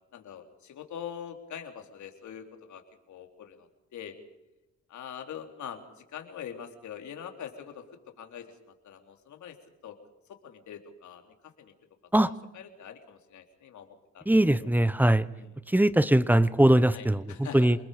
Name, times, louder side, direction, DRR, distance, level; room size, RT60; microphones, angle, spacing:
voice 1, 0.1-4.2 4.9-5.8 6.1-7.8 8.2-8.5 8.8-9.6 9.8-10.0 10.4-11.7 12.5-14.3 14.5-14.7 15.3-15.5 16.9-17.7, left 8 dB, 70° left, 4 dB, 3.7 m, -43 dB
voice 2, 14.3-15.3 15.7-17.2 17.5-17.8, right 1 dB, 5° right, 16 dB, 1.0 m, -21 dB
28.5 x 21.0 x 5.1 m, 0.95 s
cardioid pair, 90°, 30 cm